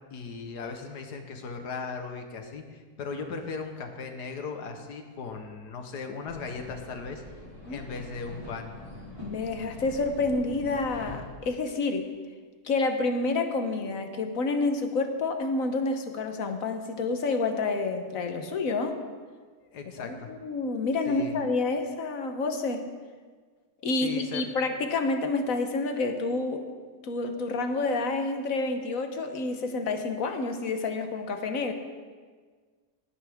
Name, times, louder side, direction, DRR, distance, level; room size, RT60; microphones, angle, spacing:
voice 1, 0.1-7.2 7.7-8.7 19.6-20.3 21.1-21.4 24.0-24.4, left 4 dB, 80° left, 5 dB, 1.8 m, -37 dB
sound 1, 6.3-11.3, left 1 dB, 20° right, 3.7 m, -44 dB
voice 2, 9.2-12.0 12.6-19.0 20.0-22.8 23.8-26.6 27.0-31.7, left 3 dB, 60° left, 6 dB, 1.4 m, -29 dB
18.5 x 9.5 x 3.6 m, 1.5 s
omnidirectional pair, 1.7 m